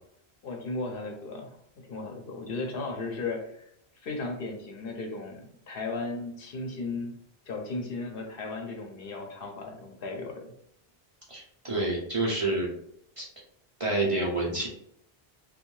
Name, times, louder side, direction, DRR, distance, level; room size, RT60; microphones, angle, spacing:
voice 1, 0.4-1.6 1.9-3.7 4.0-7.1 7.5-10.5, left 3 dB, 65° left, 2 dB, 0.8 m, -35 dB
voice 2, 11.3-12.7 13.2-13.3 13.8-14.7, right 2 dB, 40° right, -4 dB, 0.5 m, -28 dB
2.6 x 2.2 x 3.0 m, 0.73 s
omnidirectional pair, 1.0 m